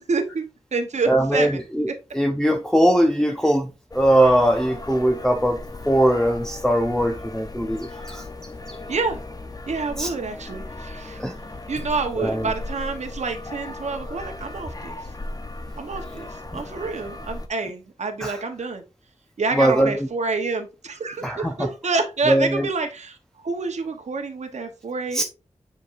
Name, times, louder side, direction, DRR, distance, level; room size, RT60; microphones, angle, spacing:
voice 1, 0.0-1.6 8.9-9.2 9.7-11.2 11.7-15.0 15.8-18.8 19.4-23.2 23.4-25.2, right 4 dB, 75° right, 1.0 m, -28 dB
voice 2, 1.1-1.9 2.1-5.6 5.9-8.2 8.7-8.8 10.0-10.1 11.2-11.3 12.2-12.5 16.5-16.6 18.2-18.4 19.5-20.1 21.2-21.7 22.3-22.7 25.1-25.2, right 1 dB, 5° left, 0.8 m, -21 dB
sound 1, 3.9-17.5, left 2 dB, 35° left, 0.8 m, -36 dB
7.3 x 5.1 x 2.5 m
cardioid pair, 45°, 12 cm